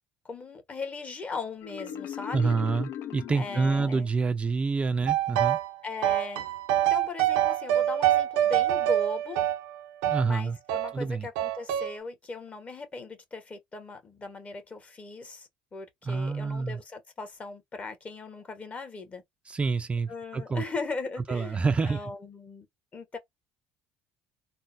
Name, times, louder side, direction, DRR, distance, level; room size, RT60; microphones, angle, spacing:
voice 1, 0.2-2.6 3.3-4.1 5.8-6.4 6.8-9.4 10.2-19.2 20.1-22.7 22.9-23.2, left 3 dB, 30° left, 1.0 m, -38 dB
Marimba xylophone, 1.6-4.4, left 9 dB, 65° left, 0.4 m, -39 dB
voice 2, 2.3-5.6 10.1-10.6 10.9-11.3 16.1-16.8 19.5-20.6 21.3-22.0, right 4 dB, 25° right, 0.4 m, -27 dB
sound 1, 5.1-5.7 6.0-10.3 10.7-10.9 11.4-11.9, right 12 dB, 85° right, 0.5 m, -25 dB
3.7 x 2.1 x 2.5 m
supercardioid pair, 90°, 5 cm